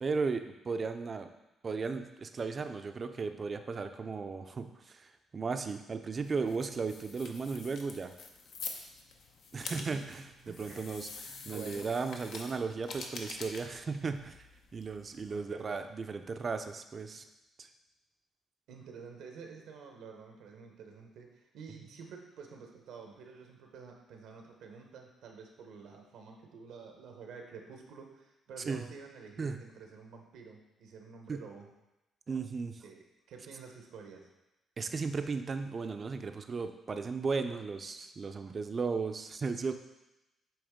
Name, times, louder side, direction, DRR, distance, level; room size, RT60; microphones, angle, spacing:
voice 1, 0.0-1.3 1.6-8.1 9.5-14.4 14.7-17.2 17.6-17.7 28.7-28.8 29.4-29.6 31.3-31.4 32.3-32.8 34.8-39.7, right 4 dB, 40° right, 8 dB, 0.5 m, -35 dB
sound 1, 6.2-15.4, left 4 dB, 70° left, 0.7 m, -46 dB
voice 2, 9.6-10.1 10.4-11.0 11.4-11.9 15.3-15.8 18.7-31.7 32.8-34.3, right 5 dB, 80° right, 3 dB, 0.9 m, -49 dB
8.6 x 3.1 x 3.6 m, 0.96 s
cardioid pair, 90°, 0 cm